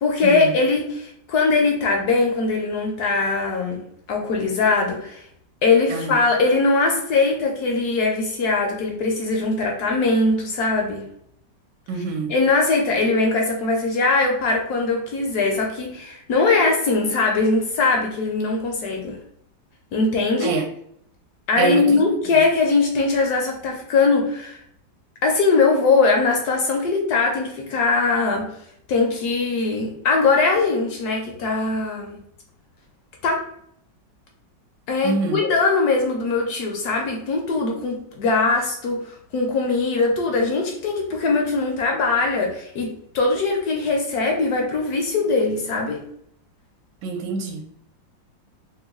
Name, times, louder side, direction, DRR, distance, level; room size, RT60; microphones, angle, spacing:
voice 1, 0.0-3.8 4.1-5.2 5.6-11.1 12.3-19.2 19.9-20.6 21.5-24.6 25.2-28.5 28.9-32.2 33.2-33.4 34.9-46.0, left 3 dB, 70° left, 1.0 m, -21 dB
voice 2, 11.9-12.3 20.4-20.7 21.6-22.0 22.3-22.4 35.0-35.4 47.0-47.6, right 5 dB, 75° right, 1.2 m, -26 dB
3.1 x 2.2 x 3.4 m
omnidirectional pair, 2.0 m